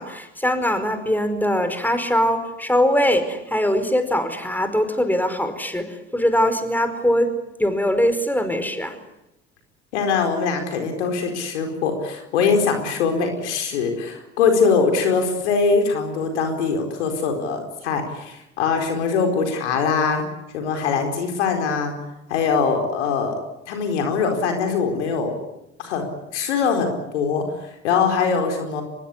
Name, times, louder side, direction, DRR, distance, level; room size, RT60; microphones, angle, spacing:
voice 1, 0.0-7.3 7.6-9.0, equal, 5° left, 9 dB, 5.1 m, -21 dB
voice 2, 9.9-20.2 20.5-21.9 22.3-23.4 23.7-25.4 25.8-28.8, left 5 dB, 85° left, 4 dB, 4.5 m, -22 dB
24.5 x 20.5 x 9.9 m, 0.88 s
hypercardioid pair, 65°, 34 cm